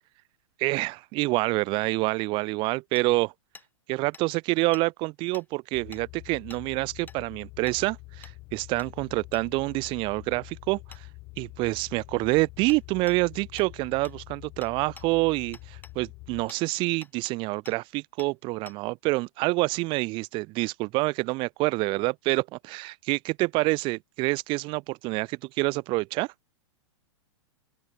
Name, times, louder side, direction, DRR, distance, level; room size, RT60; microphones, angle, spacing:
voice 1, 0.6-3.3 3.9-11.1 11.4-26.3, right 23 dB, 35° right, 0.4 m, -27 dB
Hammer, 3.0-3.1 3.5-3.7 4.1-4.2 4.7-4.9 5.3-5.5 5.9-6.0 6.5-6.6 7.1-7.2 7.7-7.8 8.2-8.4 8.8-8.9 9.3-9.5 10.9-11.0 12.7-12.8 13.1-13.2 13.6-13.7 14.0-14.2 14.6-15.1 15.5-16.0 16.5-16.6 17.0-17.3 17.7-17.8 18.2-18.3 18.7-18.8, left 4 dB, 10° left, 5.6 m, -48 dB
sound 1, 5.7-16.5, left 23 dB, 40° left, 2.1 m, -46 dB
open air
hypercardioid pair, 125°, 16 cm